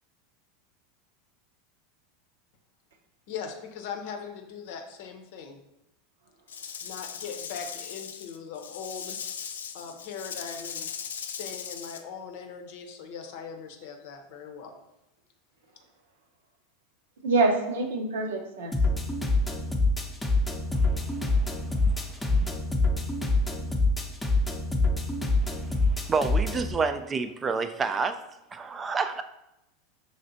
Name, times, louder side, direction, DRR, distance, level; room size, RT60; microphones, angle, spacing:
voice 1, 3.3-5.6 6.8-9.4 9.7-10.9 11.2-14.7, left 6 dB, 65° left, 5 dB, 0.7 m, -40 dB
Rattle / Rattle (instrument), 6.5-12.0, left 7 dB, 80° left, 0.3 m, -39 dB
voice 2, 17.2-18.7, right 3 dB, 75° right, 3 dB, 0.7 m, -25 dB
sound 1, 18.7-26.7, left 3 dB, 10° left, 0.7 m, -26 dB
voice 3, 20.7-22.6 25.5-28.2 28.5-29.2, right 4 dB, 25° right, 9 dB, 0.4 m, -31 dB
5.6 x 3.2 x 2.6 m, 0.89 s
hypercardioid pair, 90°, 0 cm